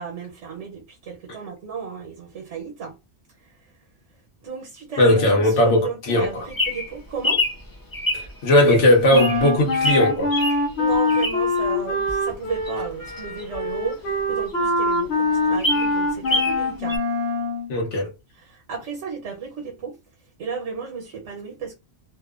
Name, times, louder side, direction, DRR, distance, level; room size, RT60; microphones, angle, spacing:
voice 1, 0.0-3.0 3.4-3.7 4.4-7.4 10.8-17.0 18.3-20.0 20.4-21.7, right 5 dB, 85° right, 1.1 m, -34 dB
voice 2, 5.0-6.5 8.1-10.3 17.7-18.1, left 1 dB, 90° left, 1.2 m, -18 dB
Bird vocalization bird call bird song, 6.2-11.6 12.1-14.2 14.6-14.7 14.9-15.0 15.4-16.6 16.9-17.0, left 1 dB, 25° left, 0.5 m, -26 dB
Wind instrument woodwind instrument, 9.1-17.7, left 2 dB, 65° left, 1.1 m, -24 dB
2.9 x 2.1 x 2.3 m
omnidirectional pair, 1.2 m